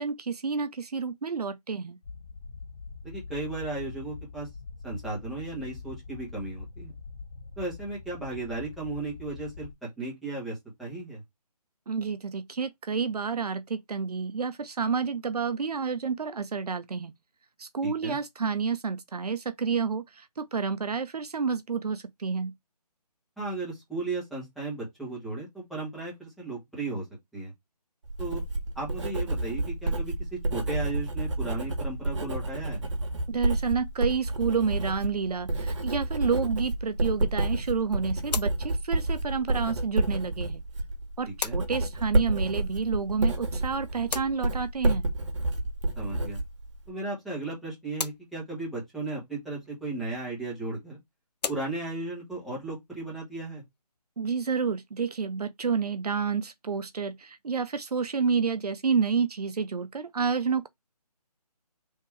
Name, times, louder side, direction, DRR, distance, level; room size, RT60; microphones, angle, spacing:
voice 1, 0.0-2.0 11.9-17.1 17.6-22.5 33.3-40.6 41.2-45.1 54.2-60.7, right 5 dB, 70° right, 0.6 m, -29 dB
sound 1, 2.0-9.7, left 4 dB, 35° left, 2.4 m, -43 dB
voice 2, 3.0-4.5 4.8-6.9 7.6-11.2 17.8-18.2 23.4-27.0 27.3-27.5 28.2-28.4 28.7-30.1 30.5-32.8 41.4-41.6 45.9-46.4 46.9-51.0 51.5-53.6, right 2 dB, ahead, 1.2 m, -35 dB
Writing, 28.0-46.9, right 2 dB, 45° right, 1.4 m, -30 dB
sound 2, 38.2-55.1, left 5 dB, 85° left, 0.6 m, -43 dB
3.6 x 2.9 x 4.4 m
figure-of-eight pair, 165°, 21 cm